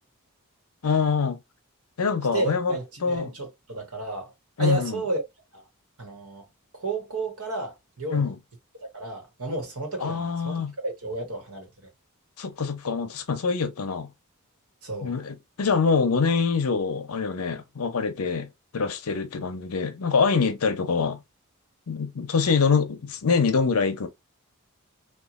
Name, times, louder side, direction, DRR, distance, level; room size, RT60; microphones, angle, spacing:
voice 1, 0.8-1.4 2.0-2.7 3.0-3.3 4.6-5.0 8.1-8.4 10.0-10.7 12.4-14.1 15.0-21.2 21.9-24.1, left 5 dB, 80° left, 0.6 m, -25 dB
voice 2, 2.3-4.3 4.6-5.2 5.5-5.6 6.0-6.4 6.7-8.3 8.8-11.9 14.8-15.2, right 2 dB, 70° right, 1.2 m, -32 dB
3.0 x 2.3 x 2.4 m
head